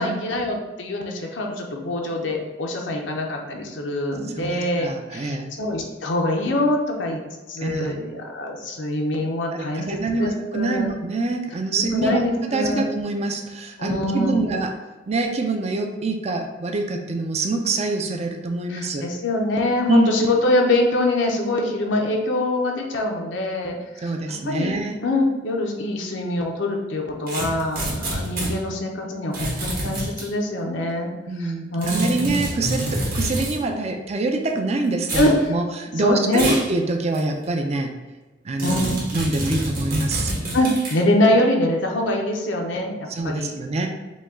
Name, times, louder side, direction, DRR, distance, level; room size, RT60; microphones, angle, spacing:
voice 1, 0.0-7.2 7.5-10.9 11.9-12.8 13.8-14.5 18.7-24.1 24.4-31.1 31.4-32.4 35.1-35.4 36.0-36.5 38.6-39.0 40.5-43.5, left 1 dB, 85° left, 1 dB, 0.7 m, -24 dB
voice 2, 4.4-5.5 7.6-7.9 9.5-14.7 15.1-19.0 19.9-20.1 24.0-25.0 31.3-37.9 38.4-40.3 43.1-43.9, right 2 dB, 35° right, 3 dB, 0.5 m, -25 dB
sound 1, 27.3-28.5 29.3-30.3 31.8-33.6 35.0-35.3 36.3-36.7 37.1-37.2 38.6-41.0, right 1 dB, 50° right, 1.3 m, -27 dB
5.2 x 2.3 x 3.6 m, 1.2 s
head